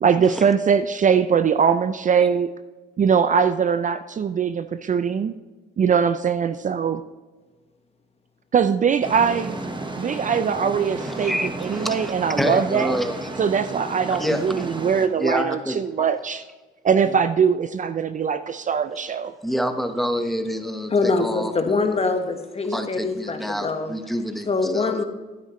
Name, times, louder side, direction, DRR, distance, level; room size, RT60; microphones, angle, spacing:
voice 1, 0.0-2.5 3.0-5.3 5.8-7.0 8.5-9.6 10.0-13.0 13.4-16.4 16.8-19.3, right 7 dB, 40° right, 11 dB, 0.5 m, -21 dB
sound 1, 9.0-15.1, right 2 dB, 25° right, 1.2 m, -33 dB
voice 2, 11.0-12.1 12.4-13.3 14.2-14.7 15.2-15.8 19.4-21.8 22.7-24.5 24.7-24.9, equal, ahead, 6 dB, 1.1 m, -27 dB
voice 3, 20.9-23.9 24.5-25.0, left 3 dB, 30° left, 6 dB, 1.4 m, -24 dB
12.0 x 9.7 x 3.1 m, 1.3 s
cardioid pair, 90°, 20 cm